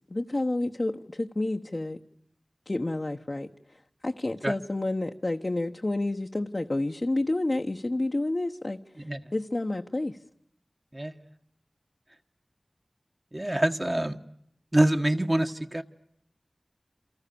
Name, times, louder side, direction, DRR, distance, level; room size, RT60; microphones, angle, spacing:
voice 1, 0.1-2.0 2.7-3.5 4.0-8.8 9.3-10.2, left 2 dB, 50° left, 3 dB, 1.1 m, -29 dB
voice 2, 10.9-11.2 13.3-14.2 14.7-15.8, right 1 dB, 25° right, 5 dB, 1.6 m, -25 dB
28.5 x 28.5 x 7.0 m, 0.74 s
wide cardioid pair, 40°, 0 cm